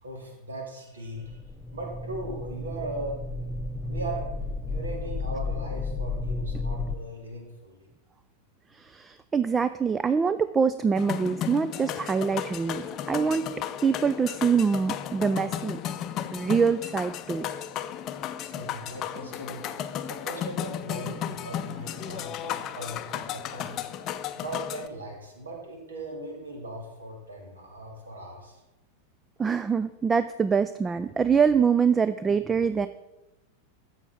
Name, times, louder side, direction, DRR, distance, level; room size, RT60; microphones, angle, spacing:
voice 1, 0.0-1.4 1.7-3.2 3.8-7.9 18.4-19.7 20.0-23.8 24.3-28.6, right 1 dB, 70° right, 0 dB, 2.8 m, -39 dB
sound 1, 1.1-7.0, left 3 dB, 10° left, 0.9 m, -33 dB
voice 2, 8.7-13.5 13.8-15.8 16.3-17.5 19.7-19.8 29.4-32.9, right 6 dB, 15° right, 13 dB, 0.4 m, -24 dB
sound 2, 10.9-24.9, left 10 dB, 35° left, 0.6 m, -34 dB
12.5 x 7.9 x 4.4 m, 0.98 s
figure-of-eight pair, 90°, 0 cm